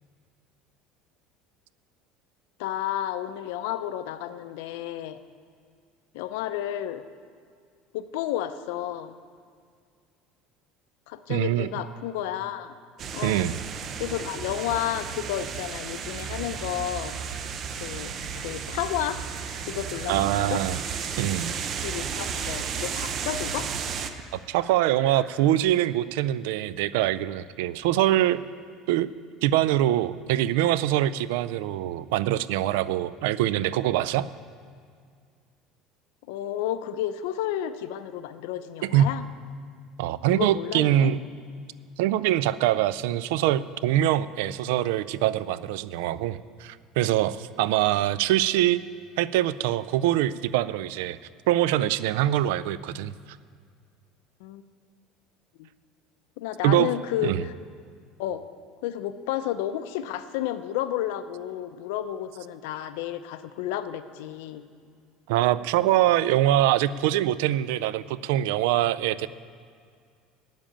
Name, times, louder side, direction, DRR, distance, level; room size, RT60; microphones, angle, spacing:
voice 1, 2.6-5.2 6.1-7.0 7.9-9.2 11.1-12.7 13.1-13.5 14.0-17.1 17.7-19.2 19.7-20.6 21.8-23.7 36.3-39.2 40.2-41.1 54.4-54.6 55.6-55.7 56.4-57.6 58.2-58.4 58.8-64.6, left 11 dB, 85° left, 12 dB, 0.6 m, -31 dB
voice 2, 11.3-11.7 13.2-13.6 20.1-20.8 21.2-21.6 24.3-28.4 28.9-29.1 29.4-34.3 38.8-39.1 40.0-41.2 42.0-48.8 49.2-51.2 51.5-53.1 56.6-56.9 57.2-57.4 65.3-69.3, right 13 dB, 90° right, 17 dB, 0.3 m, -24 dB
sound 1, 13.0-24.1, right 7 dB, 35° right, 0.6 m, -33 dB
sound 2, 16.5-25.3, right 2 dB, 60° right, 3.1 m, -48 dB
9.0 x 7.4 x 8.6 m, 2.1 s
cardioid pair, 145°, 0 cm